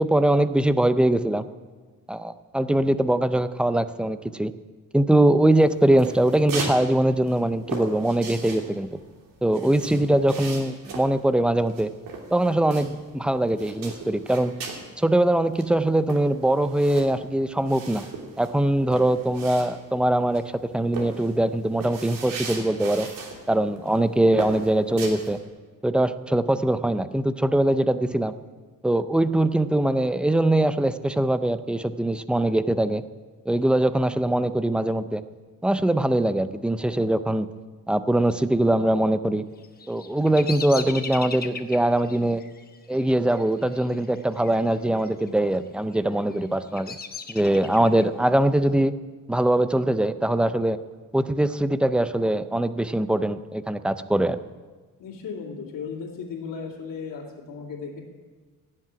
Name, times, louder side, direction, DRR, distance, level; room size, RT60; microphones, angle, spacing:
voice 1, 0.0-1.5 2.1-4.5 4.9-9.0 9.4-11.9 12.3-14.5 15.0-18.1 18.4-20.4 20.7-23.1 23.5-25.4 25.8-28.3 28.8-33.0 33.5-35.2 35.6-37.5 37.9-39.5 39.9-42.4 42.9-47.0 47.3-48.9 49.3-50.8 51.1-54.4, right 1 dB, 5° right, 12 dB, 0.4 m, -22 dB
sound 1, 5.6-6.8 7.1-13.2 13.5-14.9 15.2-15.3 15.5-20.0 20.3-20.6 20.9-23.4 23.8-24.0 24.4-25.4, right 4 dB, 85° right, 3.0 m, -36 dB
Bird vocalization bird call bird song, 39.6-44.6 44.9-45.5 46.1-48.1, left 5 dB, 30° left, 0.9 m, -38 dB
voice 2, 55.0-58.0, left 5 dB, 75° left, -4 dB, 2.6 m, -36 dB
16.5 x 7.6 x 9.7 m, 1.4 s
cardioid pair, 155°, 33 cm